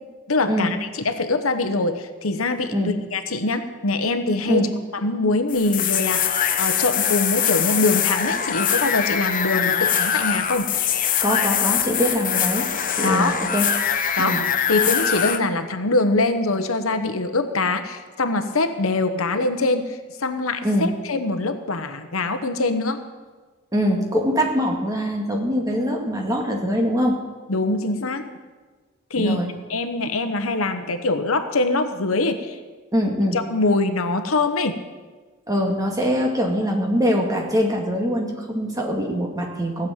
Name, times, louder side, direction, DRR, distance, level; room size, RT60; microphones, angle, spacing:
voice 1, 0.3-4.6 4.9-10.7 13.0-13.4 14.2-23.0 27.5-28.3 29.1-29.4 29.7-32.6 33.3-34.8, left 2 dB, 75° left, 8 dB, 1.1 m, -23 dB
sound 1, 5.5-15.4, left 8 dB, 40° left, 0.8 m, -23 dB
voice 2, 11.2-12.7 12.9-13.7 14.2-14.4 20.6-20.9 23.7-27.2 29.2-29.5 32.9-33.4 35.5-39.9, equal, 15° right, 1 dB, 2.1 m, -23 dB
16.5 x 7.3 x 8.8 m, 1.4 s
head